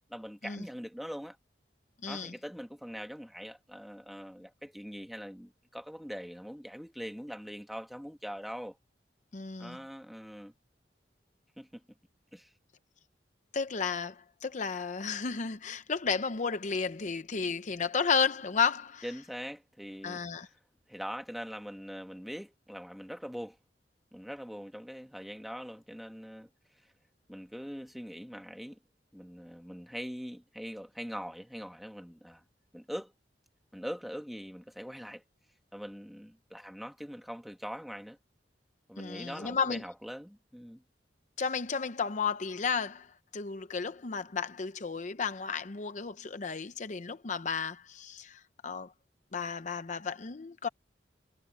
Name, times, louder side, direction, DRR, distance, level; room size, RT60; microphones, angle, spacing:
voice 1, 0.1-1.4 2.0-8.8 9.6-10.5 11.6-11.8 12.3-12.5 19.0-20.2 20.9-23.6 24.1-26.5 27.3-28.8 29.1-32.4 32.7-33.1 33.7-35.2 35.7-38.2 38.9-40.8, equal, ahead, 1.7 m, -42 dB
voice 2, 2.0-2.3 9.3-9.8 13.5-19.0 20.0-20.5 39.0-39.8 41.4-43.1 43.3-48.9 49.3-50.7, left 5 dB, 45° left, 0.7 m, -33 dB
head